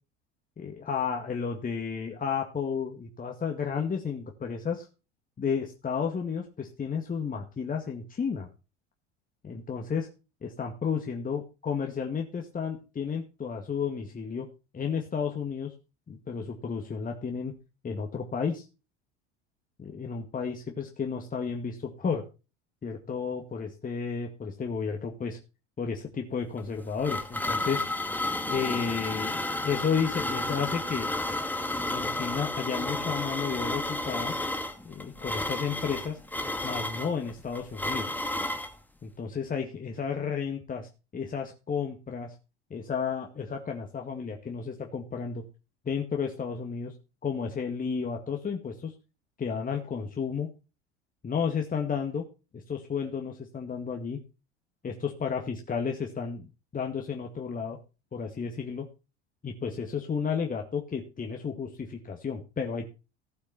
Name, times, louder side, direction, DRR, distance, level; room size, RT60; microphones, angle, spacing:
voice 1, 0.6-4.9 5.4-8.5 9.4-10.1 10.4-14.5 14.7-15.7 16.1-17.5 17.8-18.6 19.8-22.2 22.8-25.4 25.8-27.8 28.5-31.1 31.9-34.3 34.8-36.2 36.6-38.1 39.0-42.3 42.7-45.4 45.9-46.9 47.2-48.9 49.4-50.5 51.2-52.3 52.7-54.2 54.8-57.8 58.1-58.9 59.4-62.9, left 6 dB, 25° left, 2 dB, 2.1 m, -32 dB
sound 1, 26.6-38.7, left 2 dB, 5° left, 2.2 m, -32 dB
15.5 x 8.1 x 4.2 m, 0.31 s
hypercardioid pair, 75°, 35 cm